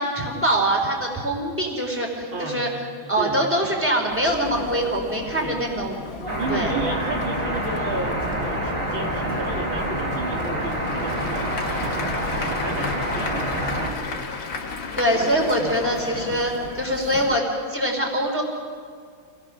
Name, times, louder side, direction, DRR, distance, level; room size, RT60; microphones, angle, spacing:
voice 1, 0.0-2.7 3.1-5.9 6.5-6.7 15.0-18.4, right 1 dB, 5° right, 1 dB, 3.4 m, -23 dB
voice 2, 2.3-2.8 3.2-3.4 5.4-5.6 6.2-14.0 15.6-15.8, right 3 dB, 70° right, 0 dB, 2.7 m, -33 dB
Chatter, 4.1-17.4, left 4 dB, 40° left, 1.0 m, -37 dB
sound 1, 6.3-13.9, right 1 dB, 25° right, 4.0 m, -27 dB
Applause / Crowd, 10.4-17.0, left 4 dB, 65° left, 2.5 m, -35 dB
26.5 x 18.0 x 6.2 m, 2.1 s
omnidirectional pair, 2.2 m